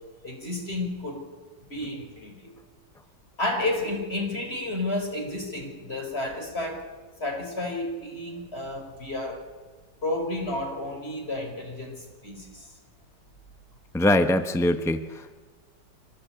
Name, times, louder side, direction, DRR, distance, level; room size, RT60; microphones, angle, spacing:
voice 1, 0.2-1.3 1.7-2.5 3.4-6.9 7.2-9.5 10.0-12.7, left 2 dB, 30° left, 3 dB, 5.2 m, -31 dB
voice 2, 13.9-15.4, left 1 dB, 5° left, 8 dB, 0.5 m, -23 dB
24.5 x 19.5 x 8.8 m, 1.3 s
omnidirectional pair, 2.0 m